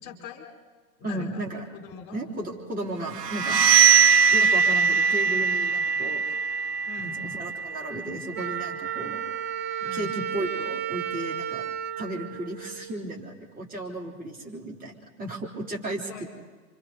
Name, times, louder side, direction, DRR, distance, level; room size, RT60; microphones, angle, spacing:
voice 1, 0.0-0.5 1.0-1.4 1.7-2.2 6.9-7.1 9.8-10.1 15.8-16.3, left 9 dB, 50° left, 2 dB, 4.5 m, -42 dB
voice 2, 1.0-1.6 2.1-3.6 4.3-6.3 7.0-9.2 9.9-11.7 12.0-16.3, right 1 dB, 20° right, -1 dB, 3.7 m, -35 dB
sound 1, 3.1-8.8, right 6 dB, 90° right, 0.7 m, -22 dB
Wind instrument woodwind instrument, 8.3-13.1, right 9 dB, 35° right, 1.1 m, -33 dB
28.5 x 26.0 x 4.1 m, 1.4 s
figure-of-eight pair, 100°, 47 cm